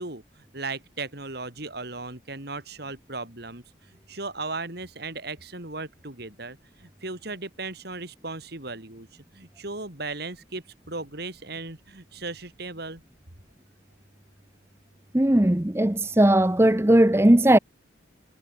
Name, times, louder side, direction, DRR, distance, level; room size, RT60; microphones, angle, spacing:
voice 1, 0.0-3.6 4.1-13.0, right 3 dB, 55° right, 3.5 m, -36 dB
voice 2, 15.1-17.6, right 1 dB, 15° right, 0.7 m, -18 dB
head